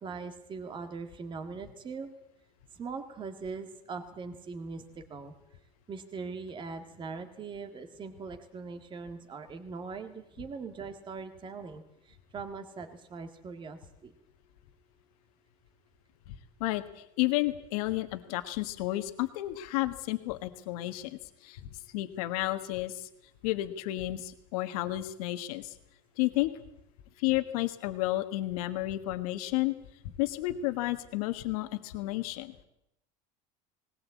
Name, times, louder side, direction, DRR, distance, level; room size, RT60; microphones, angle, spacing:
voice 1, 0.0-2.1 2.7-5.4 5.9-14.1, right 4 dB, 25° right, 7 dB, 1.8 m, -41 dB
voice 2, 16.6-23.1 23.4-25.7 26.2-26.5 27.2-29.7 30.2-32.6, left 17 dB, 85° left, 9 dB, 1.6 m, -32 dB
20.0 x 18.0 x 8.4 m, 0.83 s
supercardioid pair, 140°, 18 cm